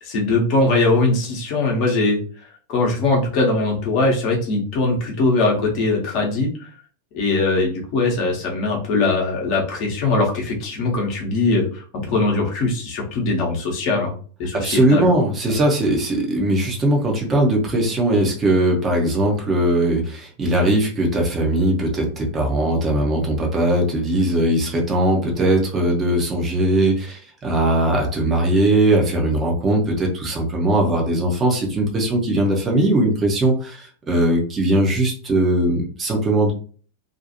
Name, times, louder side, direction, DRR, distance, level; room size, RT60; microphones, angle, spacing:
voice 1, 0.0-2.2 2.7-6.5 7.1-14.1 14.4-15.1, left 3 dB, 40° left, -1 dB, 0.8 m, -21 dB
voice 2, 14.5-36.5, right 1 dB, 20° right, 0 dB, 0.7 m, -19 dB
2.5 x 2.4 x 2.7 m, 0.42 s
figure-of-eight pair, 90°, 0 cm